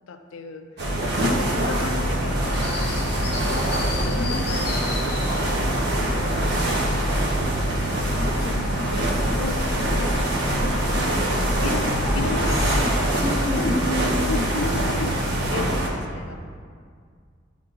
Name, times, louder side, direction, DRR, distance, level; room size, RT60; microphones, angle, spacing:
voice 1, 0.1-0.7 1.2-2.6 3.0-5.7 7.7-13.1 13.6-13.8 14.3-16.4, left 3 dB, 85° left, 7 dB, 0.5 m, -35 dB
sound 1, 0.8-15.9, right 1 dB, 60° right, 1.0 m, -24 dB
sound 2, 1.5-12.8, left 1 dB, 55° left, 0.9 m, -31 dB
voice 2, 4.1-4.7 7.8-8.9 12.8-12.9 13.2-14.5, left 1 dB, 10° left, 2 dB, 0.3 m, -31 dB
10.5 x 3.7 x 2.5 m, 2.1 s
head